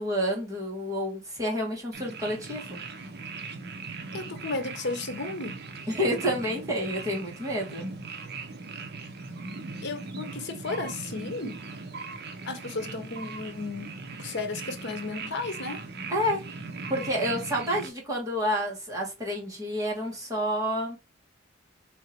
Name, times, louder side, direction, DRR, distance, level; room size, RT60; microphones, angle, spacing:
voice 1, 0.0-2.8 5.9-7.9 16.1-16.4 16.9-21.0, equal, 15° right, 1.6 m, -29 dB
sound 1, 1.9-17.9, right 4 dB, 55° right, 0.7 m, -39 dB
voice 2, 4.1-5.6 9.8-11.6 12.5-15.8, left 3 dB, 60° left, 0.9 m, -34 dB
3.5 x 2.8 x 4.3 m
head